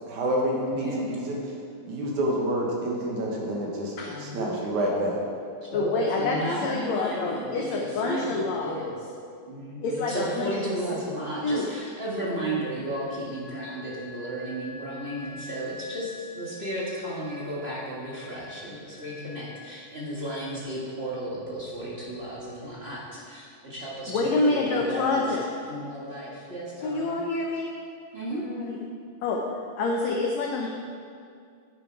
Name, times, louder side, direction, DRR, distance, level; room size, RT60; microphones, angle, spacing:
voice 1, 0.1-1.6 1.9-5.2, right 1 dB, 65° right, -2 dB, 2.5 m, -28 dB
voice 2, 0.7-1.1 4.0-4.6 5.6-9.0 9.5-25.2 25.7-27.2 28.1-28.5, right 1 dB, 30° right, -6 dB, 1.2 m, -34 dB
voice 3, 5.7-8.8 9.8-10.6 11.4-11.7 24.1-25.4 26.8-27.8 28.3-28.8 29.2-30.7, left 3 dB, 90° left, 0 dB, 1.5 m, -27 dB
Wind instrument woodwind instrument, 12.9-20.3, left 1 dB, 65° left, 1.8 m, -47 dB
10.0 x 9.5 x 4.7 m, 2.3 s
omnidirectional pair, 4.1 m